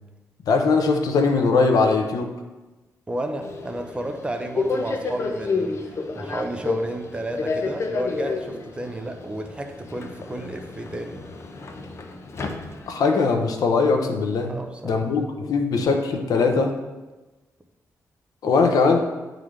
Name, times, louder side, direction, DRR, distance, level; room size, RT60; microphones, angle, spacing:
voice 1, 0.5-2.3 12.9-14.6 14.8-16.8 18.4-19.0, left 4 dB, 85° left, 4 dB, 0.7 m, -20 dB
voice 2, 3.1-11.2 14.5-15.1 18.5-18.6, right 1 dB, 15° right, 5 dB, 0.6 m, -32 dB
Subway metro underground, 3.4-13.2, left 3 dB, 45° left, 0.6 m, -30 dB
10.0 x 3.8 x 3.2 m, 1.2 s
wide cardioid pair, 130°, 6 cm